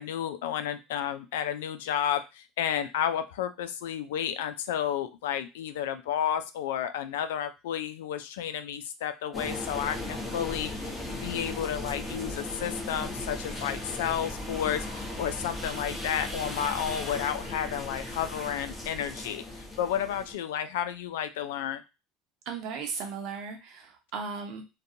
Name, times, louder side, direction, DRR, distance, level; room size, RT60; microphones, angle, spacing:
voice 1, 0.0-19.4 19.8-21.8, left 9 dB, 90° left, 10 dB, 0.3 m, -31 dB
sound 1, 9.3-20.3, left 1 dB, 5° left, 1.0 m, -37 dB
voice 2, 22.5-24.6, right 5 dB, 65° right, 4 dB, 0.8 m, -36 dB
2.5 x 2.2 x 2.7 m, 0.26 s
supercardioid pair, 100°, 0 cm